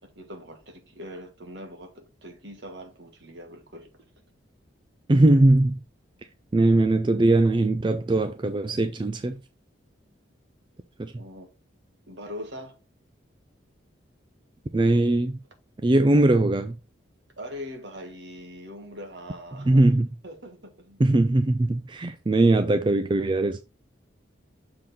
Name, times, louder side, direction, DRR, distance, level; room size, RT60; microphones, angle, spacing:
voice 1, 0.0-3.9 5.2-5.4 11.1-11.5 12.1-12.8 17.4-19.9 20.2-21.0, equal, 65° right, 1.8 m, -41 dB
voice 2, 5.1-5.8 6.5-9.4 11.0-11.1 14.7-15.4 15.8-16.8 19.7-20.1 21.0-23.6, right 2 dB, 25° right, 0.4 m, -20 dB
6.7 x 3.8 x 4.3 m
head